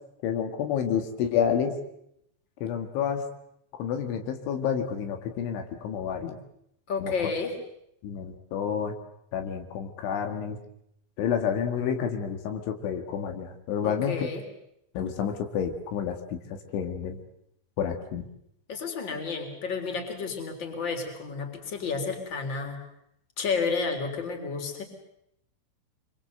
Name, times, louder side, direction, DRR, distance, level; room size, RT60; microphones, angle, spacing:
voice 1, 0.2-1.8 2.6-3.3 3.8-6.4 7.0-7.1 8.0-9.0 9.3-10.6 11.2-14.3 15.0-16.2 16.7-17.2 17.8-18.3, left 8 dB, 80° left, 5 dB, 4.2 m, -29 dB
voice 2, 6.9-7.6 13.8-14.4 18.7-22.8 23.4-24.8, left 4 dB, 25° left, 5 dB, 3.7 m, -31 dB
26.0 x 23.5 x 7.9 m, 0.76 s
omnidirectional pair, 5.4 m